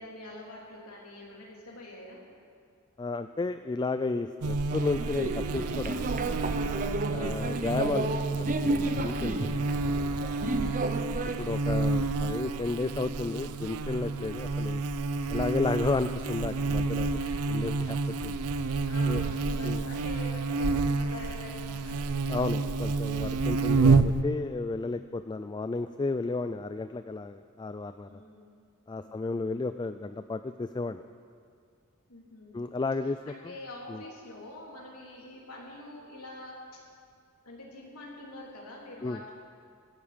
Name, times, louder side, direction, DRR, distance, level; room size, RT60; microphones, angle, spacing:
voice 1, 0.0-2.2 15.2-15.5 17.2-17.6 18.8-22.1 28.0-28.5 29.0-29.6 32.1-32.7 33.3-36.8 37.4-39.3, left 1 dB, 90° left, -3 dB, 3.5 m, -46 dB
voice 2, 3.0-6.4 7.1-9.5 11.4-14.8 15.3-17.1 17.5-18.0 18.2-18.4 19.1-19.2 19.6-19.8 22.3-28.2 28.9-31.0 32.5-33.5 33.9-34.0 39.0-39.2, left 3 dB, 20° left, 10 dB, 0.3 m, -33 dB
Buzz, 4.4-24.2, right 3 dB, 85° right, 0.6 m, -29 dB
sound 1, 4.7-11.4, right 2 dB, 40° right, 0.8 m, -32 dB
17.0 x 14.0 x 5.2 m, 2.3 s
head